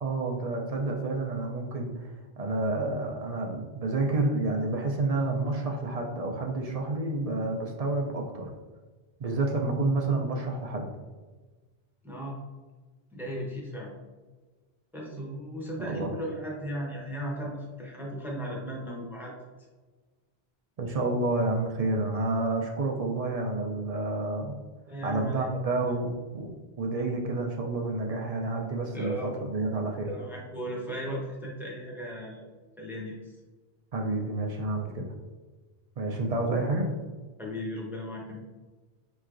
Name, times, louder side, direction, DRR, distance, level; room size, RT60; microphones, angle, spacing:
voice 1, 0.0-8.5 9.2-10.9 15.1-16.1 20.8-24.6 25.0-26.5 26.8-30.1 33.9-35.1 36.0-36.9, right 2 dB, 50° right, 1 dB, 0.5 m, -29 dB
voice 2, 12.0-12.4 13.1-13.9 14.9-19.3 24.9-25.5 28.9-29.3 30.0-32.5 32.8-33.4 37.4-38.4, equal, ahead, -3 dB, 0.7 m, -36 dB
5.4 x 3.1 x 2.5 m, 1.3 s
omnidirectional pair, 1.0 m